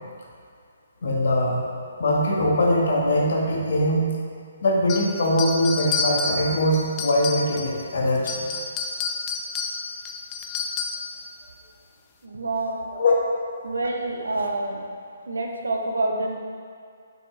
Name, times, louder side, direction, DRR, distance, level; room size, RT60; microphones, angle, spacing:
voice 1, 1.0-1.6 2.0-4.1 4.6-8.5 12.9-13.1, left 1 dB, 65° left, -2 dB, 1.4 m, -22 dB
sound 1, 4.9-7.8 8.2-11.1, left 4 dB, 25° left, 0.5 m, -29 dB
voice 2, 12.2-12.8 13.6-14.8 15.3-16.4, right 2 dB, 85° right, 1 dB, 0.9 m, -27 dB
7.1 x 4.3 x 4.2 m, 2.3 s
hypercardioid pair, 145°, 0 cm